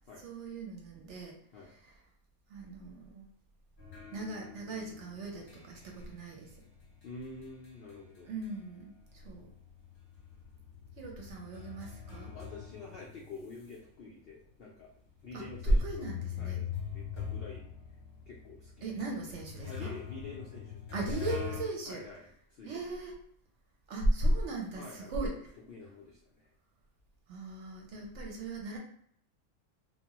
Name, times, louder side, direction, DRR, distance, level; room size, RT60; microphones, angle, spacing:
voice 1, 0.2-1.4 1.7-2.0 2.5-3.3 4.1-6.5 8.3-9.5 11.0-12.3 15.3-16.6 18.8-19.9 20.9-22.0 22.6-23.2 23.9-25.4 27.3-28.8, right 1 dB, 65° right, 0 dB, 0.8 m, -35 dB
sound 1, 3.8-8.8 9.1-13.7 14.3-14.4 15.2-21.6, left 8 dB, 40° left, 0.8 m, -43 dB
voice 2, 7.0-8.3 12.3-14.9 15.2-15.8 16.4-16.7 16.9-17.6 18.3-19.3 19.6-20.8 21.8-22.9 24.8-25.3 25.7-26.5 27.9-28.2, left 3 dB, 80° left, -2 dB, 0.5 m, -48 dB
2.8 x 2.1 x 2.9 m, 0.65 s
omnidirectional pair, 1.5 m